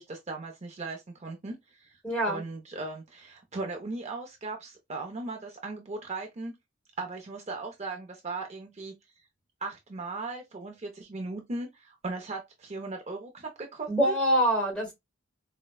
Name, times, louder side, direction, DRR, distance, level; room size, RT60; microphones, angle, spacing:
voice 1, 0.0-2.0 2.3-6.5 7.0-8.9 9.6-14.1, right 3 dB, 35° right, 0.5 m, -38 dB
voice 2, 2.0-2.4 13.9-14.9, equal, 5° left, 1.1 m, -25 dB
4.1 x 2.1 x 2.3 m
head